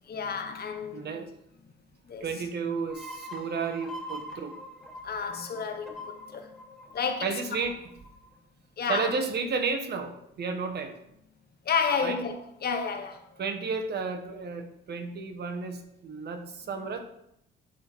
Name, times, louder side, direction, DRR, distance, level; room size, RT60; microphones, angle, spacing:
voice 1, 0.1-1.1 2.1-2.3 5.0-6.5 6.9-7.3 8.8-9.1 11.6-13.2, left 6 dB, 50° left, 1.3 m, -31 dB
voice 2, 0.9-1.3 2.2-4.5 7.2-7.8 8.9-11.0 12.0-12.2 13.4-17.0, right 4 dB, 55° right, 1.2 m, -32 dB
sound 1, 2.9-8.3, left 1 dB, ahead, 2.6 m, -43 dB
12.0 x 4.1 x 4.6 m
cardioid pair, 90°, 20 cm